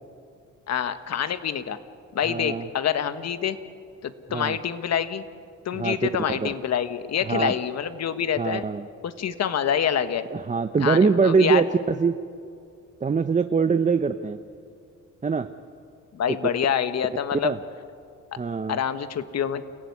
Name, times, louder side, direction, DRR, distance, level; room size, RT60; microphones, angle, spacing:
voice 1, 0.7-1.8 2.1-3.6 4.0-5.2 5.6-8.7 9.0-10.3 10.8-11.6 16.1-17.5 18.7-19.6, left 8 dB, 60° left, 11 dB, 1.5 m, -26 dB
voice 2, 2.3-2.7 4.3-4.6 5.7-6.0 6.4-6.5 7.3-7.5 8.4-8.8 10.3-12.1 13.0-14.4 15.2-15.5 17.4-17.6 18.4-18.8, right 5 dB, 25° right, 8 dB, 0.9 m, -23 dB
29.5 x 16.0 x 9.6 m, 2.3 s
cardioid pair, 90°, 30 cm